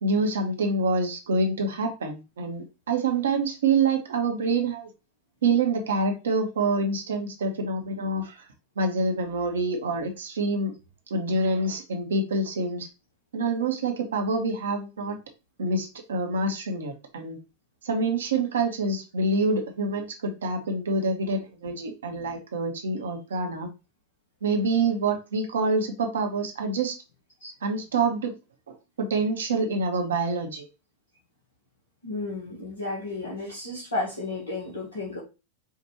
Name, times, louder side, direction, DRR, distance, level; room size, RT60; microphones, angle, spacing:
voice 1, 0.0-4.9 5.4-8.4 8.8-10.7 11.1-12.9 13.3-15.2 15.6-17.4 17.8-23.7 24.4-26.9 27.6-28.3 29.0-30.7, right 3 dB, 65° right, 4 dB, 0.9 m, -26 dB
voice 2, 32.0-35.2, left 2 dB, 75° left, -6 dB, 1.4 m, -33 dB
4.6 x 2.5 x 3.0 m, 0.28 s
figure-of-eight pair, 90°, 0 cm